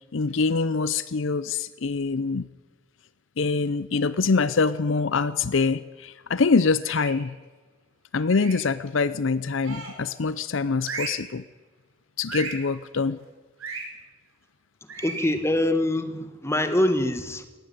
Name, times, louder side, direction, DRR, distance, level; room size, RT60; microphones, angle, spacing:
voice 1, 0.1-2.5 3.4-7.3 8.1-11.4 12.2-13.2, left 4 dB, 65° left, 16 dB, 0.6 m, -24 dB
sound 1, 6.8-7.3 8.3-8.7 9.6-10.1 10.8-11.3 12.3-12.7 13.6-13.9 14.9-15.4, right 4 dB, 80° right, 5.6 m, -35 dB
voice 2, 15.0-17.5, left 1 dB, 15° left, 9 dB, 1.6 m, -24 dB
18.5 x 15.5 x 9.5 m, 1.3 s
head